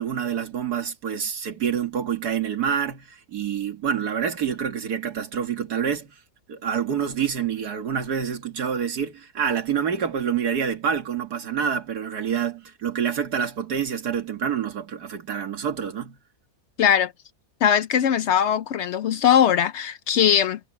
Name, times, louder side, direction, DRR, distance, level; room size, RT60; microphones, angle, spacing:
voice 1, 0.0-6.1 6.5-16.2, right 7 dB, 75° right, 2.2 m, -27 dB
voice 2, 16.8-17.1 17.6-20.6, left 9 dB, 70° left, 0.6 m, -20 dB
omnidirectional pair, 1.7 m